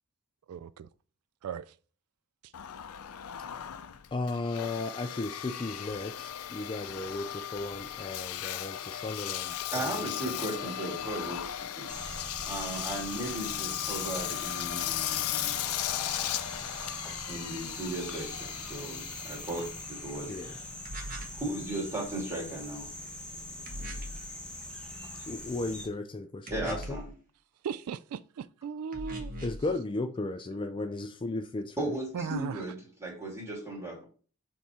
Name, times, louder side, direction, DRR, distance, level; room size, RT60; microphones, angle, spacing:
voice 1, 0.5-0.9 1.4-1.7 27.6-29.3 32.1-32.6, right 7 dB, 80° right, 0.3 m, -37 dB
Engine, 2.5-21.0, left 11 dB, 80° left, 0.5 m, -37 dB
voice 2, 4.1-10.4 10.6-10.7 20.3-20.5 25.3-27.0 29.4-31.9, left 2 dB, 20° left, 0.3 m, -35 dB
voice 3, 9.7-11.9 12.5-15.5 17.3-20.6 21.3-22.9 26.5-27.1 31.8-34.0, right 1 dB, 10° right, 3.0 m, -36 dB
sound 1, 11.9-25.9, left 1 dB, 5° left, 1.3 m, -42 dB
sound 2, 20.9-21.4 23.7-24.3 26.5-27.1 28.9-29.7, right 1 dB, 40° right, 1.3 m, -40 dB
7.1 x 3.7 x 4.1 m
head